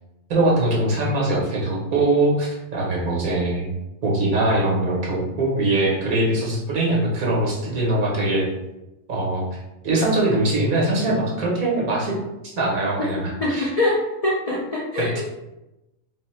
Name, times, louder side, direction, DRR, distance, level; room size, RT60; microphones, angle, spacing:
voice 1, 0.3-3.7 4.0-8.5 9.1-9.6 9.8-12.1 12.4-13.7 15.0-15.2, right 2 dB, 80° right, -4 dB, 1.6 m, -22 dB
voice 2, 13.4-15.2, left 2 dB, 55° left, -5 dB, 0.4 m, -23 dB
4.0 x 2.0 x 4.3 m, 0.96 s
omnidirectional pair, 1.5 m